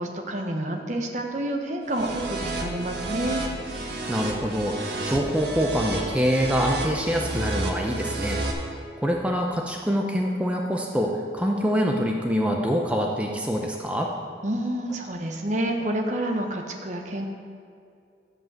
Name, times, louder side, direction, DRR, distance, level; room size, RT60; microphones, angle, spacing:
voice 1, 0.0-3.4 14.4-17.3, right 1 dB, 40° right, 2 dB, 1.1 m, -29 dB
sound 1, 1.9-8.5, right 2 dB, 60° right, 1.5 m, -31 dB
voice 2, 4.1-8.4 9.0-14.1, equal, 5° right, 0 dB, 0.6 m, -25 dB
12.0 x 5.4 x 7.4 m, 2.4 s
head